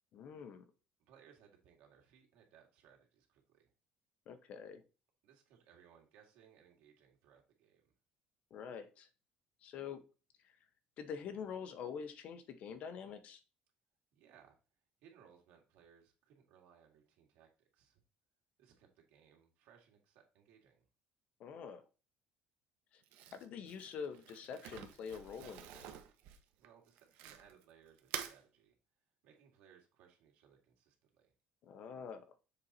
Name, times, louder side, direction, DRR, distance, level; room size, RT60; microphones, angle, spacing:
voice 1, 0.1-0.6 4.3-4.8 8.5-9.1 9.6-10.0 10.4-10.6 11.0-13.4 21.4-21.8 22.9-23.0 23.3-26.0 31.6-32.3, left 7 dB, 45° left, 0.8 m, -46 dB
voice 2, 1.0-3.7 5.2-7.9 14.1-14.6 15.0-18.0 18.6-20.9 26.6-28.7 29.2-31.3, right 8 dB, 90° right, 2.1 m, -65 dB
Crumpling crinkling, 23.0-27.6 28.0-28.4, right 10 dB, 70° right, 0.9 m, -48 dB
7.0 x 4.0 x 4.2 m
cardioid pair, 175°, 3 cm